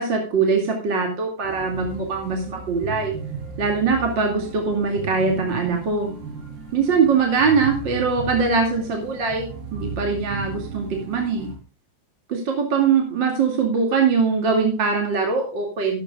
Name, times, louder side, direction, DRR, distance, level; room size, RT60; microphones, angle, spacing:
voice 1, 0.0-3.1 3.6-6.1 6.7-11.5 12.3-16.0, right 5 dB, 30° right, 1 dB, 2.4 m, -22 dB
sound 1, 1.4-11.5, right 4 dB, 65° right, 7.4 m, -36 dB
13.5 x 13.5 x 2.4 m, 0.39 s
omnidirectional pair, 5.1 m